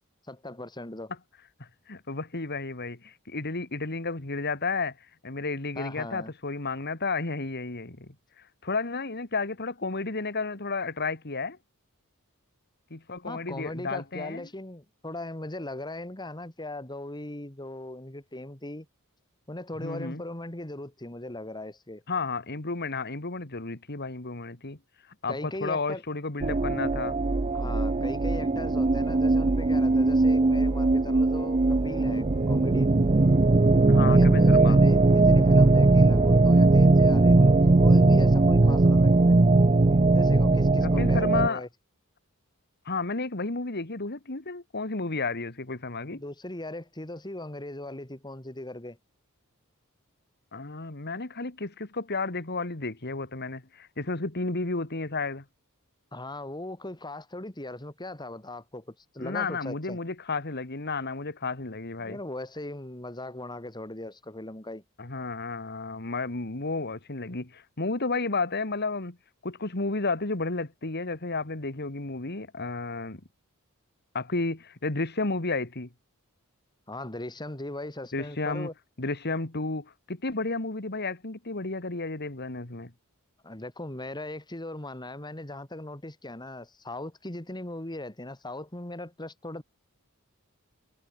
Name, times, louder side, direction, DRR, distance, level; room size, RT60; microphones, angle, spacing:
voice 1, 0.3-1.1 5.8-6.3 13.2-18.9 19.5-22.0 25.3-26.0 27.5-32.9 33.9-39.5 40.1-41.7 46.1-49.0 56.1-60.0 62.0-64.8 76.9-78.7 83.4-89.6, left 1 dB, 20° left, 2.8 m, -38 dB
voice 2, 1.6-5.0 5.2-8.2 8.6-11.6 12.9-14.5 19.8-20.2 22.1-24.8 25.2-27.2 33.9-34.8 40.8-41.6 42.9-46.2 50.5-55.4 59.2-62.2 65.0-69.2 69.4-73.2 74.1-75.9 78.1-78.7 79.0-82.9, left 3 dB, 50° left, 2.2 m, -32 dB
sound 1, 26.4-41.5, right 2 dB, 30° right, 0.6 m, -20 dB
head